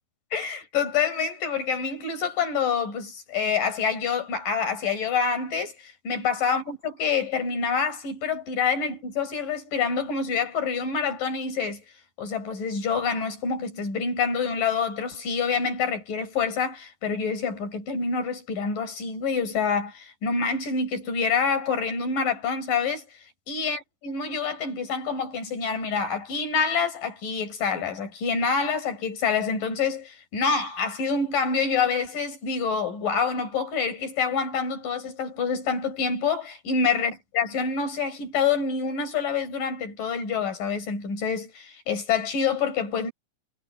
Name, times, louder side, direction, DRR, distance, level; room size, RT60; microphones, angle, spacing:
voice 1, 0.3-11.8 12.2-23.1 23.5-43.1, left 5 dB, 65° left, 6.3 m, -27 dB
omnidirectional pair, 4.2 m